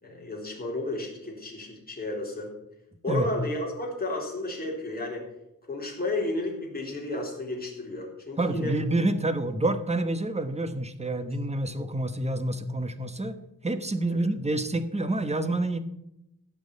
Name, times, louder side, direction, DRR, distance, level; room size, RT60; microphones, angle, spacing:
voice 1, 0.0-2.5 3.0-5.3 5.7-8.7 11.0-11.3 14.2-14.3, left 2 dB, 25° left, -2 dB, 3.9 m, -32 dB
voice 2, 8.4-13.4 13.6-15.8, right 2 dB, 20° right, 10 dB, 1.1 m, -28 dB
16.0 x 6.2 x 8.4 m, 0.84 s
wide cardioid pair, 145°, 34 cm